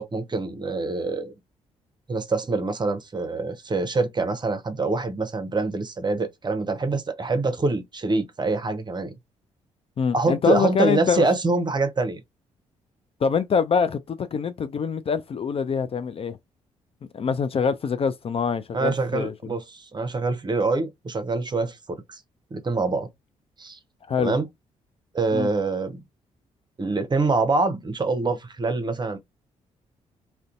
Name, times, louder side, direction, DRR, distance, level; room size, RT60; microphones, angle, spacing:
voice 1, 0.0-1.3 2.1-9.1 10.1-12.2 18.7-22.2 22.5-23.1 23.6-23.8 24.2-24.5 25.1-26.0 26.8-29.2, right 3 dB, 30° right, 0.7 m, -25 dB
voice 2, 10.0-11.3 13.2-16.4 17.1-19.6 24.1-24.4 25.3-25.5, left 6 dB, 40° left, 0.4 m, -25 dB
2.5 x 2.2 x 2.4 m
hypercardioid pair, 45°, 15 cm